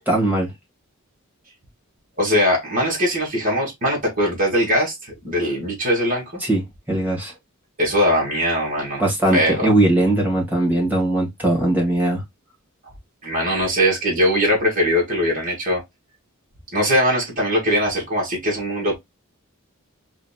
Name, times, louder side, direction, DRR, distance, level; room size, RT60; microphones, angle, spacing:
voice 1, 0.1-0.5 6.4-6.6 6.9-7.3 9.0-12.2, right 1 dB, 10° right, 1.7 m, -19 dB
voice 2, 2.2-6.4 7.8-9.0 9.3-9.7 13.2-15.8 16.7-18.9, equal, 40° right, 2.5 m, -21 dB
4.9 x 3.0 x 2.3 m
head